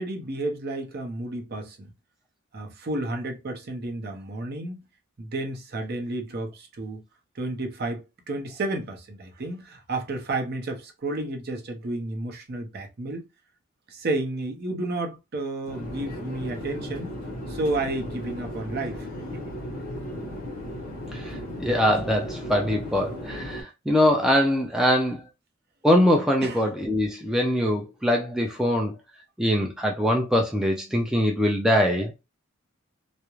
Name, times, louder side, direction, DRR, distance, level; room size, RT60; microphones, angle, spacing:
voice 1, 0.0-1.9 2.5-4.8 5.2-7.0 7.3-13.2 13.9-17.1 17.5-19.1 19.3-19.6 26.4-26.6, right 2 dB, 50° right, 0.6 m, -31 dB
Conversation / Chatter / Fixed-wing aircraft airplane, 15.6-23.6, equal, 40° left, 0.9 m, -36 dB
voice 2, 21.1-25.2 25.8-28.9 29.4-32.1, equal, 5° right, 0.3 m, -23 dB
2.3 x 2.0 x 3.0 m
head